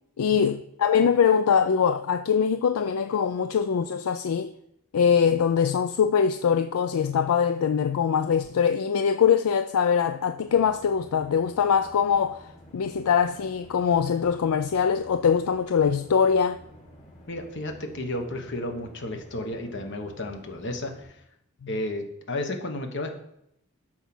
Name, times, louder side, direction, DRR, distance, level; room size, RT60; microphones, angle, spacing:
voice 1, 0.2-4.5 4.9-16.6 21.6-21.7, left 7 dB, 75° left, 0.4 m, -23 dB
sound 1, 10.5-21.0, equal, 35° left, 2.8 m, -50 dB
voice 2, 17.3-21.1 21.7-23.1, left 1 dB, 55° left, 1.3 m, -33 dB
12.0 x 4.7 x 6.1 m
head